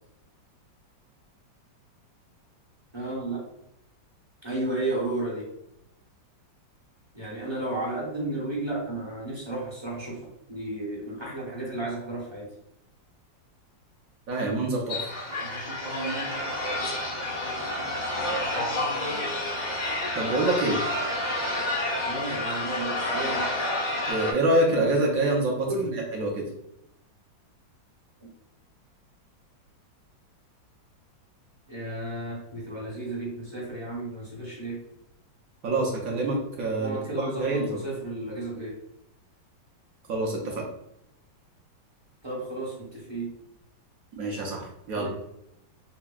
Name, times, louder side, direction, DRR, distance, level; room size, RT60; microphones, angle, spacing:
voice 1, 2.9-3.4 4.4-5.5 7.1-10.2 10.5-12.5 22.0-23.5 25.6-26.0 28.2-28.3 31.7-34.8 36.8-38.8 42.2-43.3 44.9-45.1, right 2 dB, 20° right, -5 dB, 0.7 m, -33 dB
voice 2, 14.3-15.0 20.2-20.8 24.1-25.7 26.1-26.5 35.6-37.8 40.1-40.6 44.1-45.1, right 2 dB, 60° right, -1 dB, 1.0 m, -26 dB
sound 1, 14.9-24.3, left 1 dB, 80° left, 0.4 m, -29 dB
5.8 x 2.1 x 2.3 m, 0.81 s
omnidirectional pair, 2.0 m